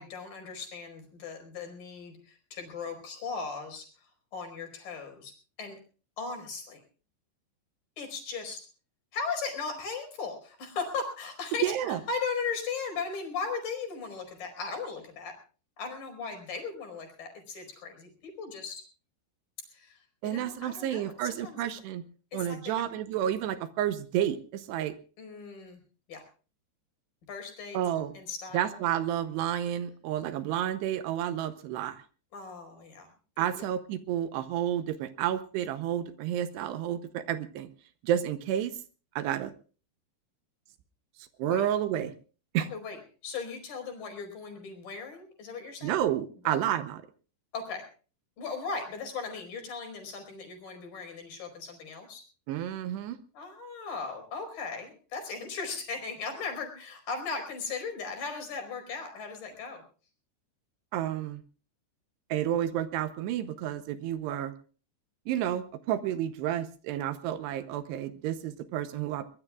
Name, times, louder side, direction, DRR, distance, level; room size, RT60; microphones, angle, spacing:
voice 1, 0.0-5.3 5.6-5.8 6.2-6.8 8.0-8.6 9.1-15.3 15.8-18.8 19.7-21.7 22.3-22.9 25.2-25.8 26.1-26.2 27.3-27.8 28.1-28.8 32.3-33.1 33.6-33.7 41.4-41.6 42.7-46.0 46.4-46.6 47.5-47.8 48.4-52.2 53.3-59.8, left 4 dB, 50° left, 4 dB, 6.1 m, -37 dB
voice 2, 11.6-12.0 20.2-22.0 22.3-24.9 27.7-28.1 28.5-32.0 33.4-37.7 38.0-38.7 39.2-39.5 41.4-42.1 42.5-42.7 45.8-47.0 52.5-53.2 60.9-61.4 62.3-64.5 65.3-69.3, right 11 dB, 75° right, 11 dB, 2.8 m, -30 dB
23.5 x 20.0 x 2.4 m, 0.38 s
omnidirectional pair, 5.1 m